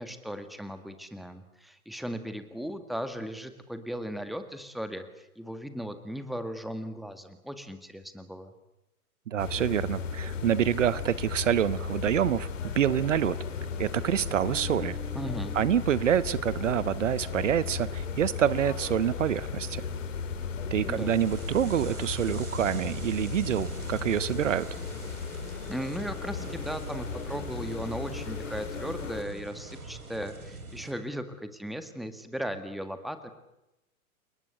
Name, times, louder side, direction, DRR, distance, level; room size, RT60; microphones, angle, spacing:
voice 1, 0.0-8.5 15.1-15.6 20.9-21.2 25.7-33.3, equal, ahead, 9 dB, 1.9 m, -37 dB
voice 2, 9.3-13.4 13.8-15.0 15.5-19.8 20.7-24.7, right 10 dB, 55° right, 17 dB, 1.0 m, -27 dB
sound 1, 9.4-29.2, left 6 dB, 60° left, 3.5 m, -36 dB
sound 2, 20.9-30.9, right 3 dB, 75° right, 4.3 m, -42 dB
29.5 x 19.0 x 8.3 m, 0.91 s
figure-of-eight pair, 110°, 44 cm